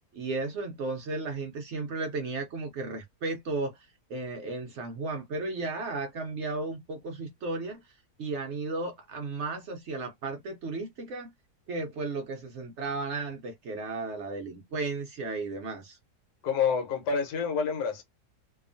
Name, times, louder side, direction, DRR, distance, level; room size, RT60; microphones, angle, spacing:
voice 1, 0.1-7.8 8.2-11.3 11.7-16.0, right 3 dB, 70° right, 0.6 m, -34 dB
voice 2, 16.4-18.0, left 6 dB, 85° left, 1.4 m, -28 dB
2.8 x 2.3 x 2.5 m
omnidirectional pair, 1.7 m